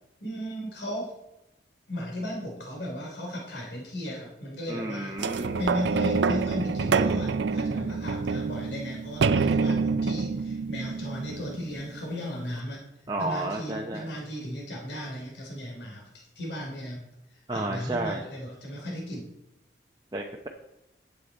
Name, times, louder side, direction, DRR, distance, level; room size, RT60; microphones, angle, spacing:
voice 1, 0.2-1.1 1.9-12.8 13.2-16.1 16.3-17.1 17.5-19.3, equal, 70° left, -1 dB, 3.1 m, -35 dB
voice 2, 4.7-5.6 13.1-14.1 17.5-18.2 20.1-20.5, right 2 dB, 25° right, 1 dB, 0.7 m, -31 dB
sound 1, 5.2-11.9 12.6-12.7, right 4 dB, 80° right, 0.4 m, -27 dB
11.0 x 8.1 x 4.1 m, 0.90 s
head